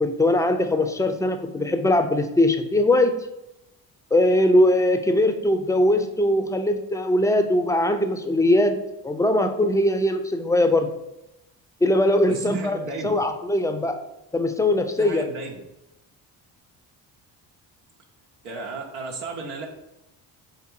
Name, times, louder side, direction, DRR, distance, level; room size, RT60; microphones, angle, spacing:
voice 1, 0.0-3.1 4.1-8.8 9.0-10.9 11.8-12.8 13.0-14.0 14.3-15.3, left 1 dB, 5° left, 7 dB, 0.4 m, -21 dB
voice 2, 12.3-13.1 15.0-15.5 18.4-19.7, right 3 dB, 90° right, 0 dB, 0.7 m, -34 dB
3.4 x 2.9 x 4.4 m, 0.90 s
supercardioid pair, 60°, 48 cm